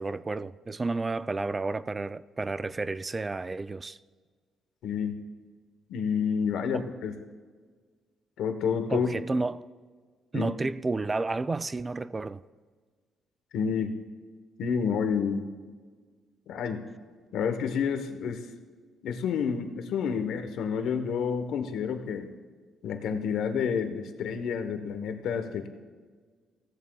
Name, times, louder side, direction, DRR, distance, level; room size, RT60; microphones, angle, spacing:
voice 1, 0.0-4.0 6.7-6.9 8.9-9.6 10.3-12.4, right 3 dB, 25° right, 0.4 m, -31 dB
voice 2, 4.8-5.2 5.9-7.1 8.4-9.1 10.3-10.5 13.5-13.9 14.6-15.5 16.5-16.8 17.3-18.5 19.0-22.3 22.8-25.7, left 6 dB, 80° left, 1.1 m, -29 dB
16.5 x 14.5 x 2.3 m
cardioid pair, 90°, 0 cm